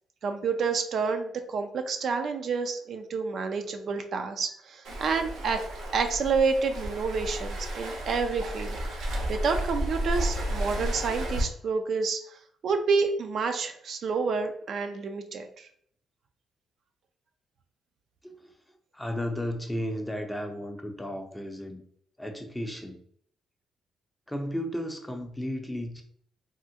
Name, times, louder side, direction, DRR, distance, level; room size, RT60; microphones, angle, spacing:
voice 1, 0.2-5.6 5.9-8.8 9.3-12.4 12.6-15.7, right 5 dB, 60° right, 6 dB, 0.4 m, -29 dB
Waves surf, 4.8-11.4, right 1 dB, 85° right, 0.8 m, -32 dB
voice 2, 18.2-21.8 22.2-23.0 24.3-26.0, equal, 5° left, 4 dB, 0.5 m, -34 dB
3.5 x 2.1 x 2.7 m, 0.64 s
cardioid pair, 90°, 0 cm